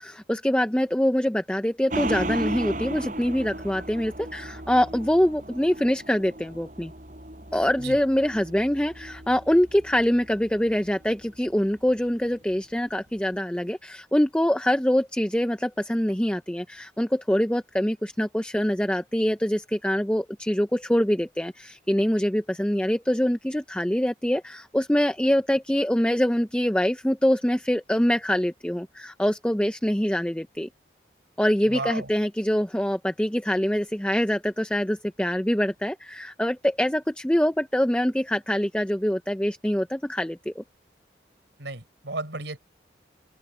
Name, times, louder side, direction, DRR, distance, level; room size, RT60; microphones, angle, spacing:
voice 1, 0.0-6.9 7.5-30.7 31.4-40.6, equal, 5° left, 0.5 m, -24 dB
Gong, 1.9-10.9 11.2-11.3, right 1 dB, 45° right, 7.8 m, -36 dB
voice 2, 31.7-32.1 41.6-42.6, right 3 dB, 80° right, 4.5 m, -33 dB
open air
head